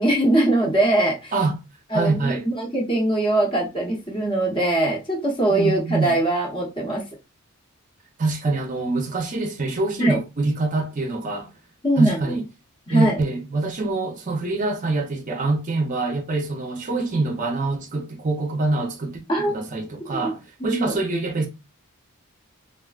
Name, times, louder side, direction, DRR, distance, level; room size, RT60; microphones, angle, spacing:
voice 1, 0.0-1.3 1.9-7.0 10.0-10.2 11.8-12.2 12.9-13.2 19.3-19.5 20.0-20.1 20.7-20.9, right 1 dB, 20° left, 0.8 m, -21 dB
voice 2, 1.9-2.5 5.5-6.2 8.2-11.5 12.0-12.5 12.9-21.5, right 3 dB, 35° right, 0.6 m, -25 dB
3.5 x 2.4 x 2.3 m
head